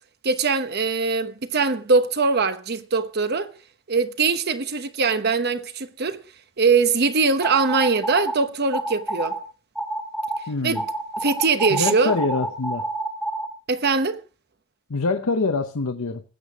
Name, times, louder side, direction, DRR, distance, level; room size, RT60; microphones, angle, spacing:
voice 1, 0.2-3.5 3.9-6.2 6.6-9.4 10.6-10.8 11.2-12.1 13.7-14.2, right 4 dB, 50° right, 0.9 m, -22 dB
sound 1, 7.4-8.4 8.7-9.4 9.8-10.4 10.8-13.5, right 2 dB, ahead, 1.5 m, -28 dB
voice 2, 10.5-10.8 11.7-12.8 14.9-16.2, left 3 dB, 90° left, 0.8 m, -25 dB
19.0 x 8.3 x 3.5 m
head